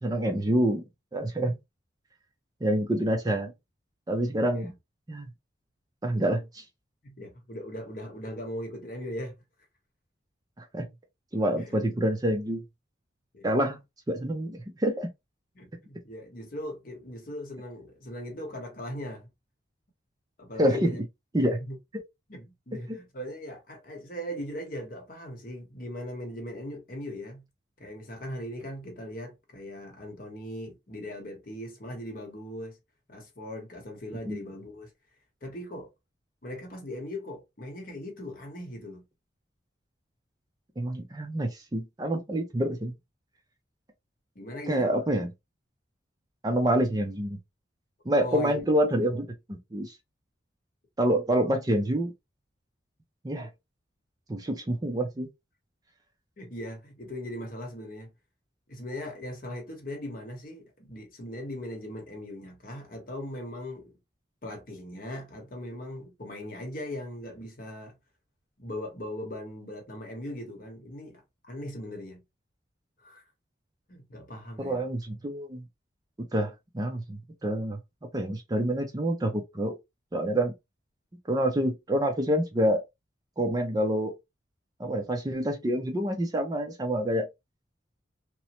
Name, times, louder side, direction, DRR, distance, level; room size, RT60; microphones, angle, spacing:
voice 1, 0.0-0.8 1.1-1.6 2.6-3.5 4.1-4.7 5.1-5.3 6.0-6.6 10.6-10.9 11.3-12.6 13.4-13.8 14.1-15.1 20.6-21.0 21.3-21.6 22.9-23.0 34.3-34.4 40.8-42.9 44.7-45.3 46.4-47.4 48.1-50.0 51.0-52.1 53.2-53.5 54.3-55.3 74.6-75.6 76.3-77.8 78.1-79.8 80.1-80.5 81.3-82.8 83.4-84.1 84.8-87.3, right 1 dB, 20° right, 0.4 m, -27 dB
voice 2, 7.0-9.3 11.6-11.8 13.3-13.5 15.5-19.3 20.4-21.0 21.4-21.8 22.3-27.4 27.8-32.8 33.1-34.9 35.4-35.9 36.4-39.1 44.3-44.9 48.2-48.6 56.4-58.1 58.7-64.0 64.4-68.0 68.6-72.2 73.0-73.2 73.9-74.8, left 1 dB, 45° left, 0.9 m, -39 dB
3.0 x 2.0 x 2.8 m
head